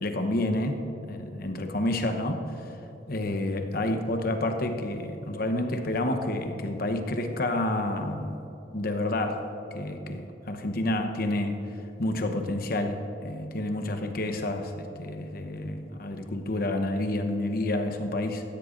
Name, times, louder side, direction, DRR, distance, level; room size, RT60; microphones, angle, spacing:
voice 1, 0.0-2.5 3.1-8.5 8.7-11.6 12.0-18.4, left 1 dB, 55° left, 6 dB, 0.9 m, -29 dB
17.0 x 13.5 x 2.6 m, 2.9 s
head